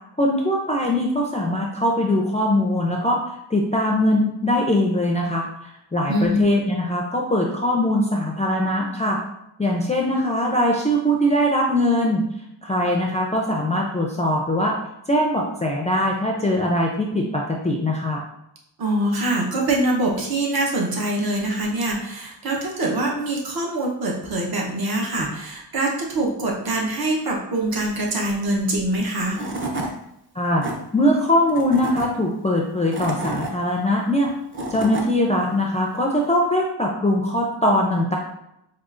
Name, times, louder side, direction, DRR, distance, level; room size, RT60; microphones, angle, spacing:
voice 1, 0.2-3.2 3.5-9.2 9.6-12.2 12.6-14.8 15.1-18.2 30.4-30.6 30.9-34.3 34.7-38.2, left 1 dB, 15° left, -1 dB, 0.4 m, -21 dB
voice 2, 6.1-6.4 18.8-29.4, right 1 dB, 50° right, -2 dB, 0.9 m, -24 dB
Tools / Wood, 29.0-29.1 29.3-29.9 30.4-30.7 31.5-32.1 32.7-33.5 34.3-35.1, right 2 dB, 25° right, 0.6 m, -29 dB
4.8 x 2.3 x 2.5 m, 0.83 s
wide cardioid pair, 95°, 46 cm